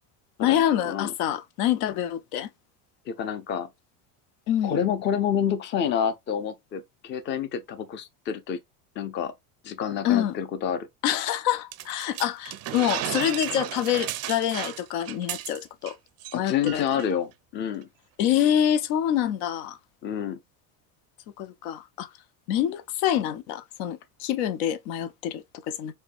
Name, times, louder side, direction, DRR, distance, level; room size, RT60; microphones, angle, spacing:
voice 1, 0.4-2.5 4.5-4.8 10.0-10.3 11.0-16.0 16.3-17.0 18.2-19.8 21.4-22.1 22.5-25.9, left 11 dB, 85° left, 0.6 m, -26 dB
voice 2, 3.1-3.7 4.6-8.6 9.0-9.3 9.6-10.9 16.3-17.9 20.0-20.4, left 8 dB, 25° left, 0.4 m, -28 dB
sound 1, 11.7-15.9 16.2-16.4 16.7-17.1, right 13 dB, 40° right, 0.4 m, -34 dB
4.4 x 2.3 x 2.4 m
cardioid pair, 130°, 43 cm